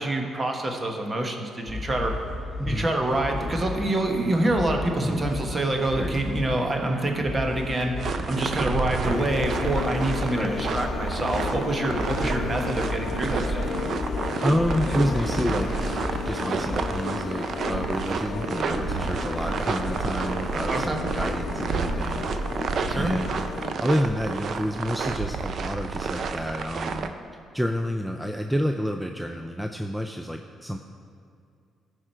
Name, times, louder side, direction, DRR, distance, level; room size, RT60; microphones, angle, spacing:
voice 1, 0.0-2.1 2.7-13.6 20.7-21.0 22.9-23.2, right 1 dB, 30° right, 3 dB, 1.3 m, -26 dB
sound 1, 1.7-17.1, left 2 dB, 15° left, 1.1 m, -34 dB
sound 2, 8.0-27.1, right 4 dB, 55° right, 0.6 m, -30 dB
sound 3, 9.0-23.7, left 6 dB, 60° left, 0.5 m, -34 dB
voice 2, 14.4-22.3 22.9-23.3 23.8-27.1 27.5-30.8, equal, 5° right, 4 dB, 0.4 m, -29 dB
15.0 x 5.0 x 4.5 m, 2.4 s
cardioid pair, 90°, 0 cm